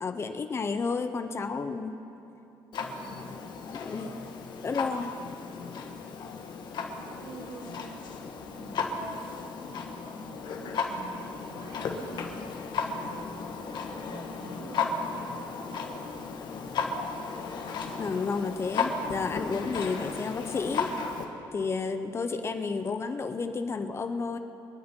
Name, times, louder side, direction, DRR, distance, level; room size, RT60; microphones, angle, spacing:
voice 1, 0.0-2.0 3.7-4.1 4.6-5.2 18.0-20.9 21.5-24.4, left 4 dB, 30° left, 8 dB, 0.7 m, -31 dB
Clock, 2.7-21.3, left 4 dB, 55° left, 1.5 m, -35 dB
voice 2, 3.0-3.5 7.0-8.1 8.5-9.6 10.0-12.5 13.0-13.8 14.0-15.1, right 3 dB, 65° right, 1 dB, 2.2 m, -47 dB
24.5 x 10.0 x 4.4 m, 3.0 s
cardioid pair, 145°, 9 cm